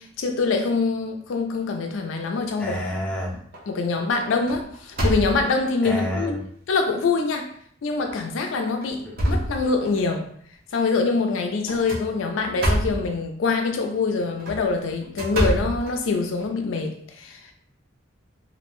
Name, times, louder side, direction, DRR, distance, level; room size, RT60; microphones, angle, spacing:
voice 1, 0.0-2.8 3.7-6.4 6.7-7.5 7.8-10.3 10.7-17.5, left 4 dB, 70° left, 4 dB, 0.4 m, -24 dB
sound 1, 2.5-3.1 3.5-3.8 4.1-5.7 6.4-6.5 7.0-7.1 8.0-8.2 8.7-10.1 11.6-13.1 14.2-16.5, equal, 45° right, 0.6 m, -27 dB
voice 2, 2.6-3.4 5.8-6.4, equal, 5° left, -5 dB, 0.5 m, -28 dB
2.5 x 2.1 x 3.0 m, 0.62 s
head